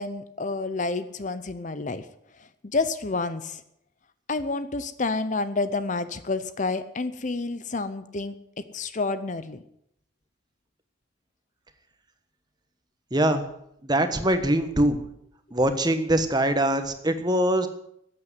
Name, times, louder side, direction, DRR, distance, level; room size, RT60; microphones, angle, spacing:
voice 1, 0.0-2.1 2.4-3.6 4.3-9.6, left 3 dB, 35° left, 13 dB, 0.7 m, -29 dB
voice 2, 13.1-13.4 13.8-15.0 15.5-17.7, right 1 dB, 20° right, 8 dB, 1.3 m, -23 dB
14.0 x 8.8 x 9.5 m, 0.75 s
head